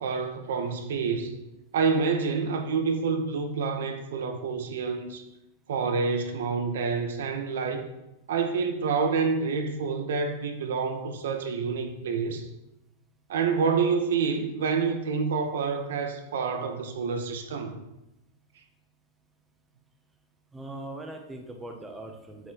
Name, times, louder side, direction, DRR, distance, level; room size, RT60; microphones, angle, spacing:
voice 1, 0.0-1.3 1.7-5.2 5.7-7.9 8.3-12.5 13.3-17.8, right 5 dB, 80° right, 6 dB, 0.8 m, -28 dB
voice 2, 20.5-22.5, right 1 dB, 10° right, 3 dB, 0.6 m, -40 dB
7.9 x 4.4 x 2.9 m, 0.92 s
supercardioid pair, 155°, 0 cm